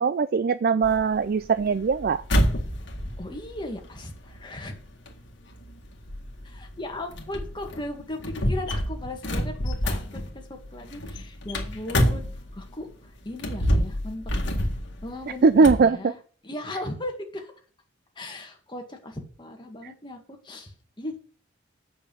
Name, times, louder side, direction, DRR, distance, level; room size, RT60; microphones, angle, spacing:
voice 1, 0.0-2.2 15.4-16.1, right 4 dB, 50° right, 15 dB, 0.4 m, -20 dB
sound 1, 0.8-12.8 13.3-15.9, equal, 60° left, 1.9 m, -28 dB
voice 2, 3.2-4.8 6.4-8.2 8.5-14.3 15.0-16.2 16.4-17.5 18.2-21.2, left 1 dB, 25° left, 3 dB, 2.0 m, -37 dB
8.4 x 6.0 x 7.3 m, 0.41 s
head